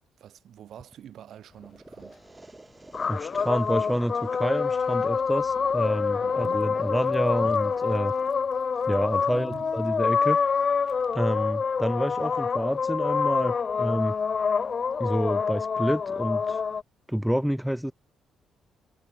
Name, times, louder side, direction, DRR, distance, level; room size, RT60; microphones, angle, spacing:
voice 1, 0.2-2.4 6.2-6.7 9.2-9.7, right 10 dB, 70° right, 2.7 m, -46 dB
sound 1, 1.6-9.6, right 2 dB, 15° right, 6.2 m, -49 dB
sound 2, 2.9-16.8, left 6 dB, 40° left, 0.6 m, -26 dB
voice 2, 3.1-8.1 8.9-10.4 11.1-14.1 15.0-16.6 17.1-17.9, equal, ahead, 0.7 m, -28 dB
sound 3, 5.7-5.9 6.4-11.3, right 6 dB, 45° right, 6.9 m, -67 dB
cardioid pair, 90°, 0 cm